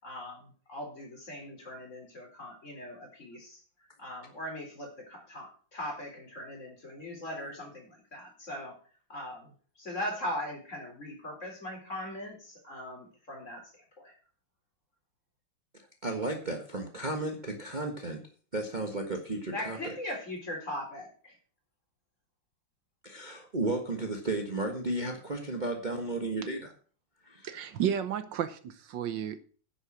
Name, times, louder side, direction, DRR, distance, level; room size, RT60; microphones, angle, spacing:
voice 1, 0.0-3.6 4.0-8.8 9.1-9.5 9.8-14.1 19.5-21.4, left 1 dB, 40° left, 4.4 m, -40 dB
voice 2, 15.7-18.2 18.5-19.9 23.0-26.7 27.2-27.5, right 2 dB, 25° right, 1.4 m, -34 dB
voice 3, 27.4-29.4, right 9 dB, 75° right, 1.5 m, -32 dB
10.5 x 8.0 x 6.3 m
omnidirectional pair, 2.1 m